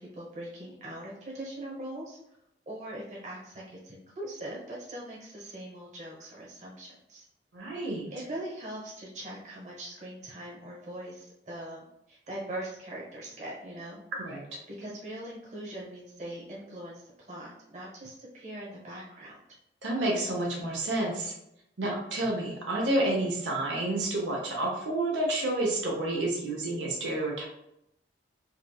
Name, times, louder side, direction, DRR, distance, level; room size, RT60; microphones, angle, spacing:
voice 1, 0.0-2.2 2.7-7.2 8.1-14.0 14.7-19.4, right 1 dB, 40° right, -4 dB, 1.1 m, -41 dB
voice 2, 7.5-8.1 14.2-14.4 19.8-21.3 21.8-27.4, right 1 dB, 85° right, -2 dB, 0.8 m, -29 dB
4.4 x 2.4 x 2.3 m, 0.80 s
head